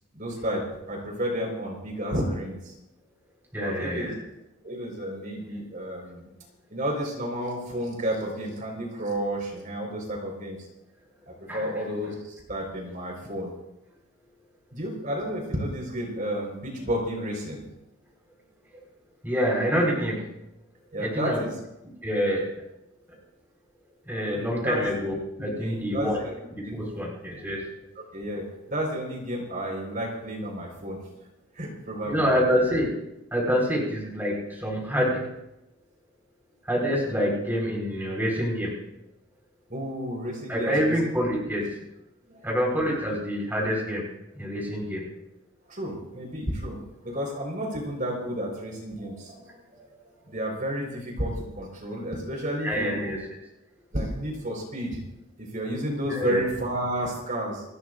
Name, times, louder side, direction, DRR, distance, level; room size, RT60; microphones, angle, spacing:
voice 1, 0.1-2.7 3.6-4.1 4.6-6.3 6.7-10.7 11.5-13.5 14.7-17.6 20.9-21.5 24.3-24.8 25.4-26.3 26.6-26.8 28.1-31.0 31.5-32.3 39.7-41.1 42.3-42.4 45.7-46.8 47.0-49.9 50.2-53.1 53.9-55.0 55.4-57.6, equal, 40° right, 0 dB, 4.9 m, -31 dB
voice 2, 3.5-4.2 11.5-11.8 19.2-20.2 21.0-21.4 22.0-22.7 24.1-26.2 26.6-27.7 32.0-33.0 33.3-35.3 36.6-38.7 40.5-41.8 42.4-44.1 44.4-45.0 52.6-53.2 56.1-56.4, equal, 10° right, -2 dB, 4.7 m, -26 dB
29.5 x 13.5 x 2.6 m, 0.87 s
head